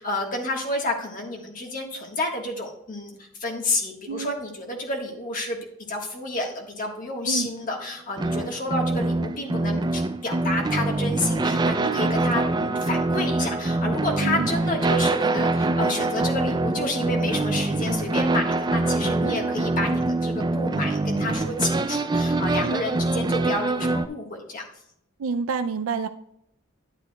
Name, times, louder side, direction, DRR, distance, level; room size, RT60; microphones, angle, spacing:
voice 1, 0.0-3.1 3.4-5.6 5.9-24.6, left 2 dB, 40° left, 1 dB, 1.4 m, -30 dB
sound 1, 8.2-24.1, right 2 dB, 20° right, 0.3 m, -24 dB
voice 2, 25.2-26.1, right 5 dB, 85° right, 8 dB, 0.4 m, -29 dB
10.5 x 9.8 x 2.3 m, 0.74 s
head